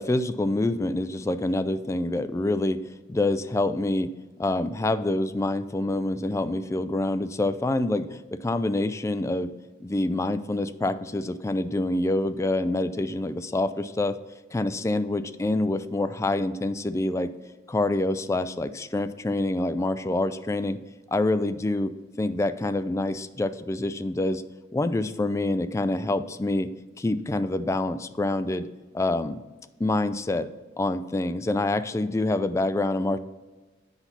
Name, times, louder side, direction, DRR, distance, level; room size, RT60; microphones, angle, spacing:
voice 1, 0.0-2.8 3.1-4.1 4.4-9.5 9.8-14.2 14.5-17.3 17.7-20.8 21.1-24.4 24.7-26.7 27.0-28.7 28.9-29.4 29.8-30.5 30.8-33.2, left 2 dB, 15° left, 11 dB, 0.3 m, -26 dB
8.0 x 5.7 x 4.1 m, 1.2 s
head